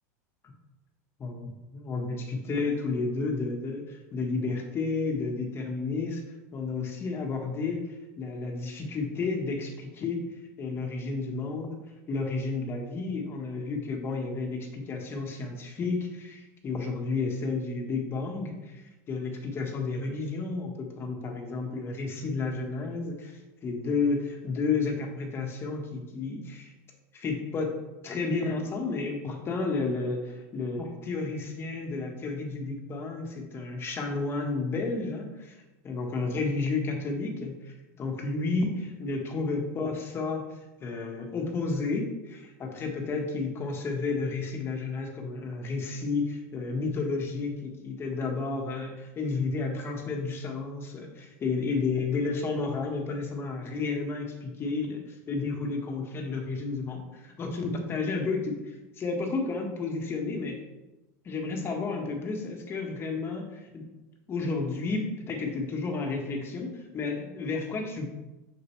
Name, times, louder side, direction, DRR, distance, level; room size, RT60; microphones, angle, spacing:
voice 1, 1.2-6.2 6.5-7.8 8.2-10.2 10.6-11.8 12.1-26.7 27.1-27.7 28.0-40.5 40.8-58.6 59.0-60.6 61.2-63.8 64.3-68.1, left 3 dB, 25° left, 2 dB, 1.3 m, -31 dB
6.6 x 6.5 x 3.1 m, 1.1 s
supercardioid pair, 135°, 9 cm